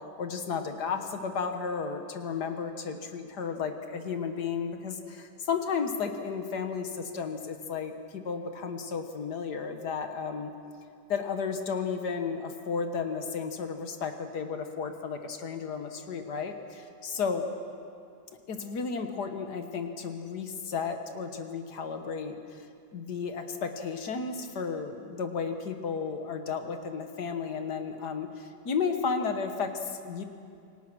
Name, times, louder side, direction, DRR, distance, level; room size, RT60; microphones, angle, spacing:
voice 1, 0.2-10.5 11.1-17.5 18.5-22.7 22.9-30.2, left 5 dB, 60° left, 6 dB, 1.8 m, -33 dB
27.5 x 18.0 x 6.1 m, 2.4 s
omnidirectional pair, 2.1 m